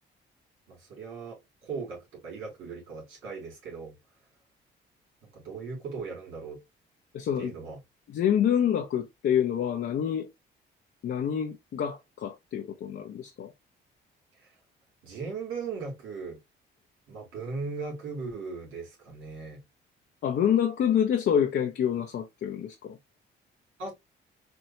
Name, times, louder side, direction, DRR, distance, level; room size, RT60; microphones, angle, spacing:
voice 1, 0.7-3.9 5.3-6.6 7.4-7.8 14.4-14.5 15.0-16.4 17.1-19.6 23.8-23.9, right 4 dB, 80° right, 2.8 m, -38 dB
voice 2, 7.1-7.5 8.1-10.3 11.0-13.5 20.2-23.0, left 9 dB, 60° left, 0.7 m, -27 dB
4.5 x 2.7 x 2.8 m
cardioid pair, 90°, 20 cm